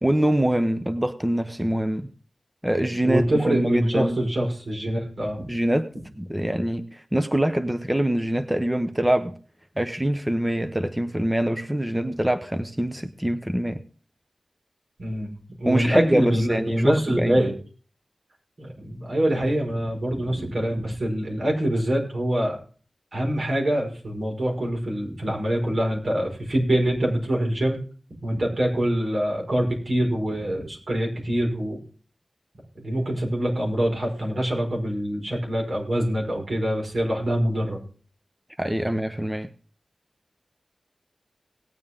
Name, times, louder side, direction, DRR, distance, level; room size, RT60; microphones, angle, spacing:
voice 1, 0.0-2.1 2.6-4.2 5.5-5.9 6.2-9.3 9.8-13.8 15.7-17.4 38.6-39.5, right 1 dB, 15° right, 1.0 m, -24 dB
voice 2, 3.0-5.4 15.0-15.3 15.6-17.5 18.6-22.6 23.1-27.8 28.2-31.8 32.7-37.8, right 1 dB, 70° right, 5.1 m, -25 dB
18.5 x 8.7 x 3.7 m
cardioid pair, 45°, 0 cm